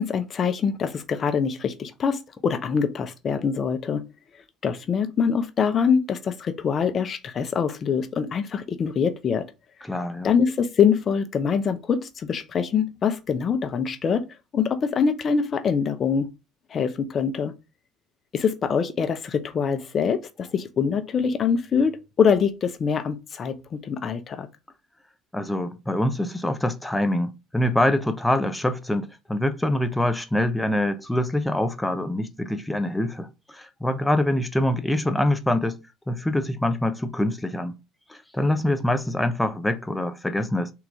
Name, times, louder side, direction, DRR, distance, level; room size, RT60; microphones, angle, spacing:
voice 1, 0.0-4.0 4.6-9.5 10.2-14.2 14.5-16.3 16.7-17.5 18.3-24.5, left 6 dB, 40° left, 0.7 m, -24 dB
voice 2, 9.8-10.3 25.3-35.8 36.1-37.8 38.1-40.7, left 1 dB, 5° left, 0.7 m, -25 dB
3.9 x 2.9 x 3.5 m
hypercardioid pair, 75°, 0 cm